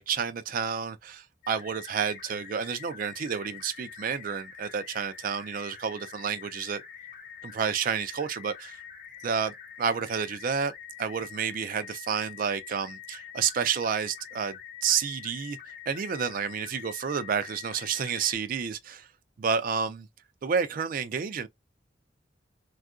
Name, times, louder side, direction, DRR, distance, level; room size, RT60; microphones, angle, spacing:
voice 1, 0.0-6.8 7.4-8.8 9.2-10.7 11.0-15.6 15.9-19.1 19.4-20.1 20.4-21.5, right 6 dB, 45° right, 0.3 m, -30 dB
sound 1, 1.4-18.4, left 9 dB, 45° left, 0.7 m, -45 dB
3.6 x 2.4 x 2.3 m
head